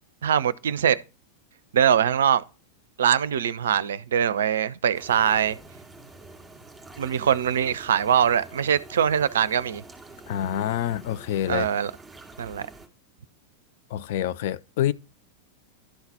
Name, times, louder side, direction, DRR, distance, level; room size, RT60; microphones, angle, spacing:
voice 1, 0.2-1.0 1.7-2.4 3.0-5.6 7.0-9.8 11.5-11.9 12.4-12.7, right 8 dB, 65° right, 0.5 m, -22 dB
sound 1, 4.9-12.9, right 2 dB, 10° right, 2.3 m, -47 dB
voice 2, 10.3-11.7 13.9-14.9, left 11 dB, 50° left, 0.4 m, -27 dB
11.5 x 4.0 x 5.5 m
figure-of-eight pair, 90°, 0 cm